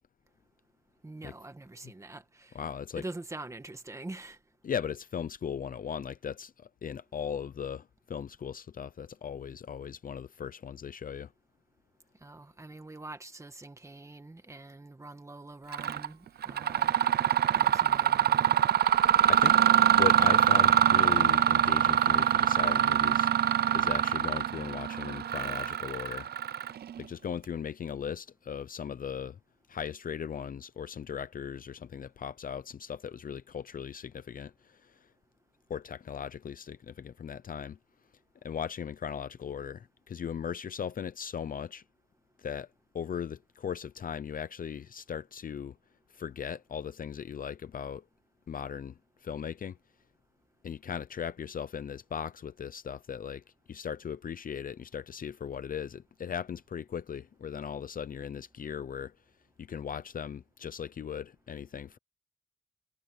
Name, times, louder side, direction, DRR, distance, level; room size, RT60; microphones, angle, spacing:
voice 1, 1.0-2.6 2.9-4.4 12.2-16.9 17.5-18.5, right 2 dB, 15° right, 1.7 m, -45 dB
voice 2, 2.5-3.0 4.6-11.3 19.3-19.6 19.9-23.3 23.7-26.3 27.0-29.4 29.7-35.0 35.7-37.8 38.4-41.8 42.4-42.7 42.9-45.8 46.1-48.0 48.5-48.9 49.2-49.8 50.6-59.1 59.6-62.0, left 8 dB, 50° left, 0.6 m, -38 dB
Mechanisms, 15.7-16.1 16.4-27.0, right 9 dB, 60° right, 0.5 m, -24 dB
wide cardioid pair, 150°, 18 cm